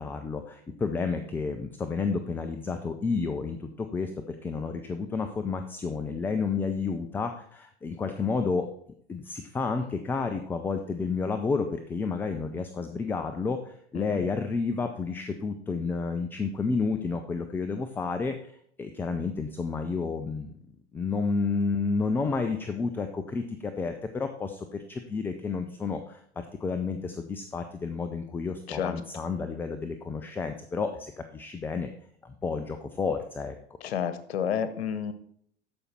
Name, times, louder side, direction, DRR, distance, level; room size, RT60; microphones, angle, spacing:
voice 1, 0.0-8.7 9.1-18.5 18.8-20.6 20.9-31.9 32.2-33.6, left 4 dB, 5° left, 7 dB, 0.3 m, -31 dB
voice 2, 33.8-35.1, left 8 dB, 65° left, 12 dB, 1.1 m, -30 dB
13.0 x 5.3 x 4.3 m, 0.64 s
figure-of-eight pair, 90°, 34 cm